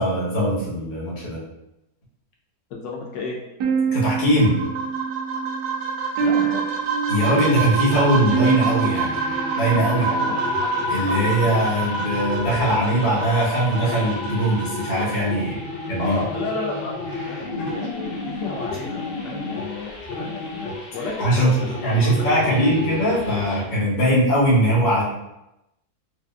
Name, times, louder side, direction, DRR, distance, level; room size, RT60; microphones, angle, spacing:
voice 1, 0.0-1.4 3.9-4.6 7.1-9.2 9.6-10.1 10.9-16.2 21.2-21.5 21.8-25.0, right 1 dB, 30° left, -8 dB, 1.1 m, -21 dB
voice 2, 2.7-3.4 6.2-6.6 10.1-10.5 16.0-22.8, left 3 dB, 85° left, -2 dB, 1.5 m, -32 dB
sound 1, 3.6-10.7, right 6 dB, 80° right, 1.2 m, -27 dB
sound 2, 4.2-15.2, right 3 dB, 60° right, 0.7 m, -27 dB
sound 3, 7.1-23.7, left 2 dB, 70° left, 0.5 m, -33 dB
4.7 x 2.7 x 2.3 m, 0.90 s
omnidirectional pair, 1.8 m